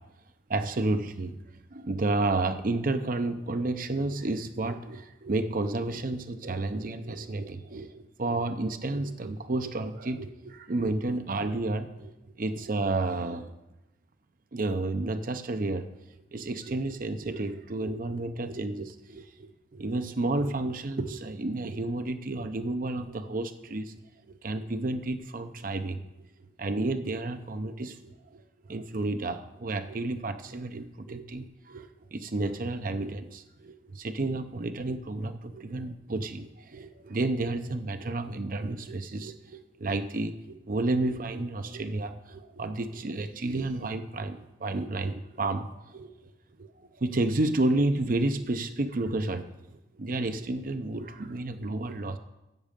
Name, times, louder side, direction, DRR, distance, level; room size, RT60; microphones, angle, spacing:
voice 1, 0.5-1.4 1.7-13.5 14.5-15.9 16.3-24.0 24.3-26.2 26.6-28.4 28.7-46.1 46.6-52.2, right 2 dB, 50° right, 9 dB, 0.6 m, -31 dB
10.5 x 7.4 x 5.1 m, 0.99 s
head